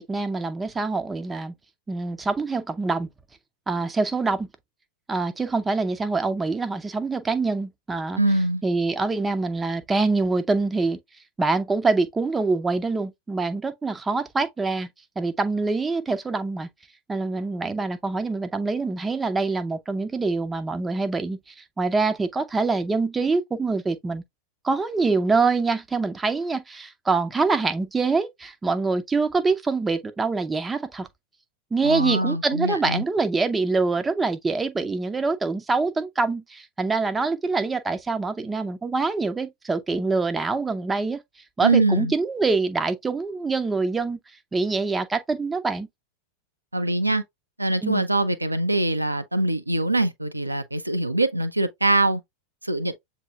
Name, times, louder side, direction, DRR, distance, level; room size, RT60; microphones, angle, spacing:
voice 1, 0.0-1.5 1.9-3.1 3.7-4.5 5.1-8.2 8.6-11.0 11.4-14.9 15.2-16.7 17.1-24.2 24.6-31.1 31.7-41.2 41.6-44.2 44.5-45.9 47.8-48.0, right 3 dB, 15° right, 0.5 m, -25 dB
voice 2, 8.2-8.6 31.8-33.0 41.6-42.1 46.7-47.2 47.6-52.2 52.6-52.9, right 2 dB, 85° right, 0.5 m, -23 dB
7.3 x 2.7 x 2.3 m
figure-of-eight pair, 90°, 0 cm